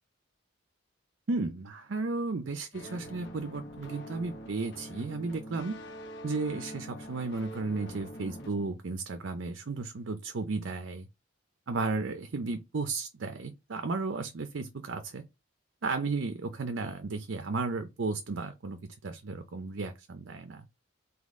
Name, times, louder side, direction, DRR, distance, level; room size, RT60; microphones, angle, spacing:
voice 1, 1.3-5.8 6.2-11.1 11.7-15.2 15.8-20.7, right 3 dB, 65° right, 0.6 m, -34 dB
sound 1, 2.7-8.5, equal, 55° left, 1.2 m, -44 dB
4.0 x 2.8 x 3.6 m
head